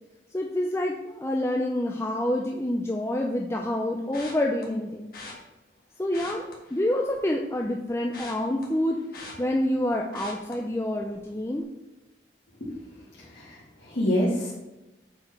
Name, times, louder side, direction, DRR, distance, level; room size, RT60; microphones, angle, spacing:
voice 1, 0.3-5.1 6.0-9.0 9.4-11.6, left 1 dB, 15° left, 0 dB, 0.5 m, -27 dB
sound 1, 4.1-4.6 5.1-5.3 6.0-7.3 7.6-9.8 10.1-10.5 11.0-11.3 11.6-11.7, left 3 dB, 50° left, 1.8 m, -43 dB
voice 2, 13.2-14.5, equal, 75° left, -7 dB, 2.2 m, -27 dB
7.7 x 4.7 x 5.8 m, 1.0 s
head